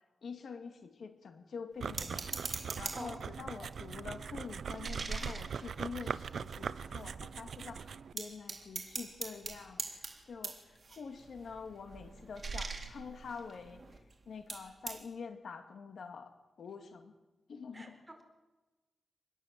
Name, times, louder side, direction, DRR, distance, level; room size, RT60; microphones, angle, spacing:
voice 1, 0.2-13.8 14.3-17.1 17.5-18.1, left 5 dB, 65° left, 6 dB, 2.4 m, -46 dB
sound 1, 1.8-8.1, right 6 dB, 65° right, 0.7 m, -41 dB
sound 2, 2.0-3.2 3.7-6.5 7.0-7.1 7.3-7.7 8.2-14.1 14.5-15.0, right 4 dB, 40° right, 3.8 m, -43 dB
voice 2, 17.7-18.3, right 1 dB, 15° right, 4 dB, 4.7 m, -47 dB
27.0 x 21.0 x 7.8 m, 1.1 s
wide cardioid pair, 145°, 0 cm